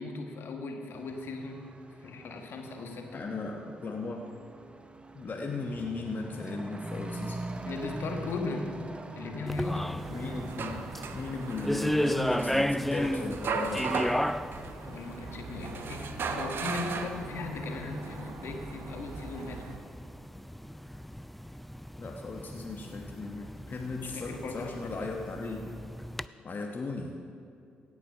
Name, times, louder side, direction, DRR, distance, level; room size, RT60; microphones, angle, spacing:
voice 1, 0.0-1.7 2.0-3.2 7.7-8.7 9.1-9.9 14.8-19.7 23.8-25.1, left 3 dB, 60° left, 3 dB, 1.4 m, -38 dB
Truck / Accelerating revving vroom, 0.9-15.4, right 2 dB, 25° right, 0.8 m, -44 dB
voice 2, 3.1-4.2 5.1-7.4 10.1-13.9 22.0-25.6 26.4-27.1, left 3 dB, 45° left, 1 dB, 1.1 m, -36 dB
sound 1, 9.5-26.3, equal, 5° left, 0.3 m, -35 dB
sound 2, 10.0-19.8, right 4 dB, 55° right, 0.9 m, -38 dB
16.5 x 6.1 x 5.5 m, 2.6 s
hypercardioid pair, 45°, 4 cm